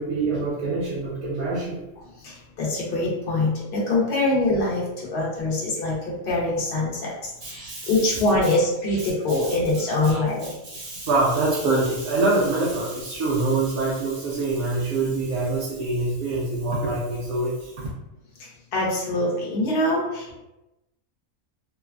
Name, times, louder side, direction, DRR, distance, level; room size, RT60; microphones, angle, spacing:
voice 1, 0.0-1.9 7.4-8.2 8.9-10.2 10.6-17.7, right 2 dB, 80° right, -7 dB, 1.1 m, -25 dB
voice 2, 2.2-10.5 18.4-20.4, left 2 dB, 50° left, -4 dB, 0.9 m, -24 dB
3.0 x 2.2 x 2.4 m, 0.94 s
omnidirectional pair, 1.4 m